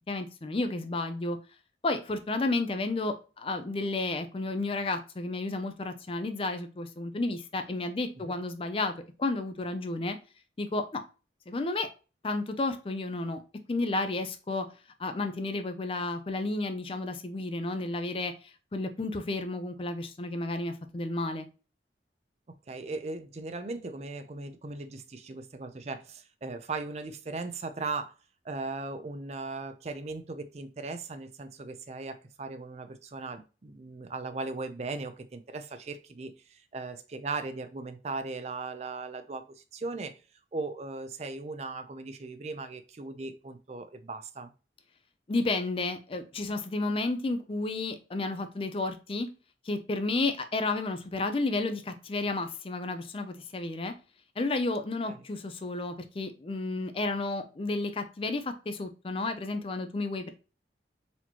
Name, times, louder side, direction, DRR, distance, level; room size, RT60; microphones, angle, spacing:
voice 1, 0.0-1.4 1.8-8.9 9.2-10.2 10.6-11.0 11.5-11.9 12.2-13.4 13.7-14.7 15.0-18.3 18.7-21.5 45.3-49.3 49.6-53.9 54.4-60.3, left 2 dB, 30° left, 8 dB, 0.4 m, -32 dB
voice 2, 22.7-28.1 28.4-40.2 40.5-44.5 55.0-55.2, right 3 dB, 35° right, 9 dB, 0.4 m, -38 dB
4.1 x 3.0 x 2.8 m, 0.33 s
head